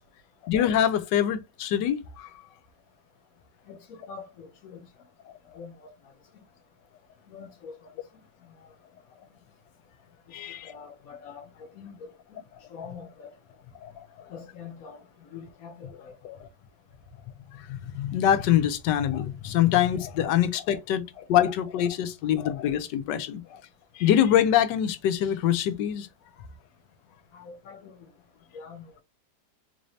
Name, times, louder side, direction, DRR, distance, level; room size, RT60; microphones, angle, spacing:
voice 1, 0.4-2.3 10.3-10.7 13.8-13.9 17.5-23.6 23.9-26.1, left 10 dB, 90° left, 1.3 m, -24 dB
voice 2, 3.7-4.8 5.6-5.9 6.3-6.4 7.3-7.8 10.6-11.4 11.7-12.1 12.7-13.3 14.3-15.0 15.3-16.4 27.3-27.9 28.5-28.8, left 6 dB, 60° left, 1.2 m, -44 dB
3.9 x 2.7 x 3.1 m
omnidirectional pair, 1.8 m